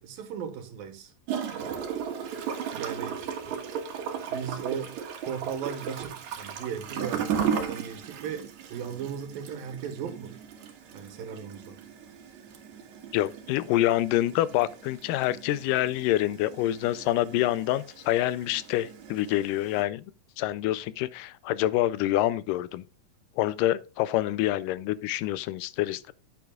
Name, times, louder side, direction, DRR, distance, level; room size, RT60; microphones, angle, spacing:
voice 1, 0.0-1.1 2.7-3.2 3.5-3.6 4.3-4.9 5.3-10.4 10.9-11.8, right 8 dB, 80° right, 3.1 m, -37 dB
Gurgling / Toilet flush, 1.3-19.8, right 7 dB, 60° right, 2.5 m, -36 dB
voice 2, 13.1-20.1 20.4-22.8 23.4-26.1, left 14 dB, 80° left, 2.1 m, -26 dB
9.5 x 9.1 x 2.3 m
omnidirectional pair, 4.0 m